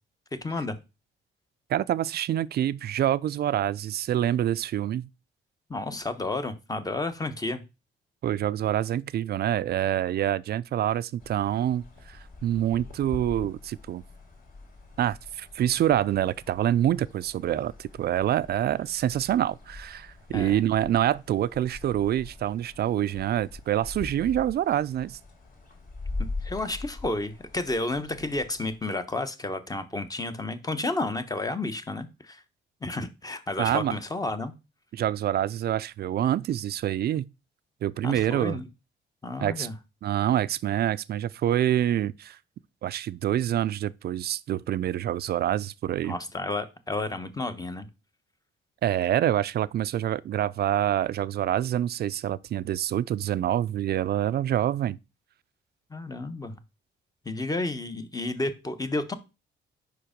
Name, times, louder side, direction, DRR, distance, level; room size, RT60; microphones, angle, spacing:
voice 1, 0.4-0.8 5.7-7.6 20.3-20.6 26.4-32.4 32.8-34.5 38.0-38.6 39.2-39.7 46.0-47.9 55.9-56.5 57.2-59.1, left 2 dB, 20° left, 0.9 m, -31 dB
voice 2, 1.7-5.1 8.2-14.0 15.0-25.2 33.6-34.0 34.9-37.3 37.8-38.6 39.4-39.7 40.0-42.4 42.8-46.2 48.8-55.0, right 11 dB, 55° right, 0.4 m, -26 dB
sound 1, 11.2-28.8, left 3 dB, 45° left, 2.7 m, -42 dB
5.2 x 4.7 x 5.1 m
cardioid pair, 90°, 20 cm